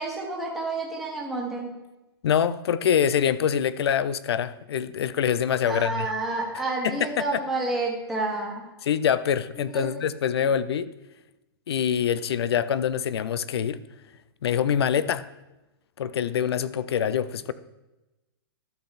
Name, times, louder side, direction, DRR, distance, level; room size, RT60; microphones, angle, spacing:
voice 1, 0.0-1.7 5.6-8.7 9.7-9.9 10.4-10.5, right 3 dB, ahead, -4 dB, 1.3 m, -29 dB
voice 2, 2.2-6.1 6.8-7.4 8.8-10.9 11.7-13.8 14.4-15.3 16.0-17.5, left 8 dB, 80° left, 16 dB, 0.5 m, -25 dB
12.0 x 5.8 x 4.2 m, 1.0 s
hypercardioid pair, 165°, 13 cm